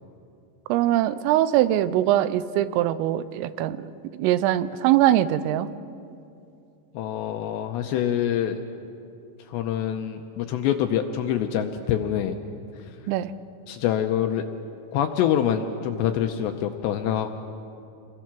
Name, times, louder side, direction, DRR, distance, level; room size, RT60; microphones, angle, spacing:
voice 1, 0.7-5.7 13.1-13.3, right 13 dB, 90° right, 14 dB, 3.3 m, -22 dB
voice 2, 6.9-8.6 9.5-12.4 13.7-14.4 14.9-17.3, left 10 dB, 80° left, 6 dB, 2.6 m, -25 dB
28.5 x 21.0 x 6.0 m, 2.6 s
omnidirectional pair, 5.7 m